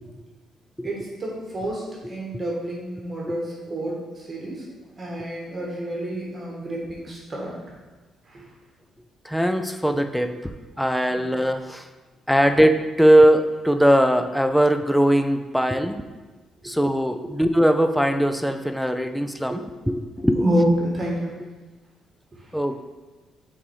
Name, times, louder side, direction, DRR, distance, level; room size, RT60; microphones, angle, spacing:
voice 1, 0.8-4.6 5.0-7.7 8.3-8.4 11.1-11.3 16.6-16.7 17.2-17.3 19.5-19.6 20.3-21.3 22.3-22.5, right 1 dB, 25° right, -3 dB, 1.4 m, -28 dB
voice 2, 9.2-10.5 10.8-11.9 12.3-16.0 16.6-19.6 19.9-20.4 22.5-22.8, equal, ahead, 7 dB, 0.4 m, -20 dB
5.9 x 4.0 x 4.7 m, 1.3 s
cardioid pair, 135°, 0 cm